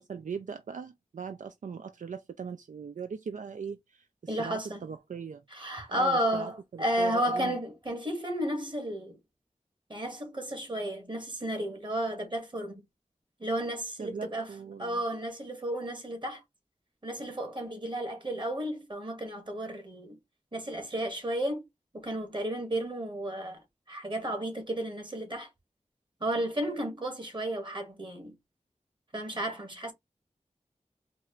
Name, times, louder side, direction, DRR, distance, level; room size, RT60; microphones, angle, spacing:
voice 1, 0.1-5.4 5.9-7.6 14.0-15.0, right 6 dB, 75° right, 0.4 m, -40 dB
voice 2, 4.3-4.8 5.5-9.2 9.9-12.8 13.4-14.5 14.8-16.4 17.0-20.2 20.5-21.6 21.9-23.6 23.9-25.5 26.2-28.3 29.1-29.9, right 1 dB, 40° right, 1.5 m, -33 dB
4.4 x 2.5 x 3.1 m
wide cardioid pair, 65°, 13 cm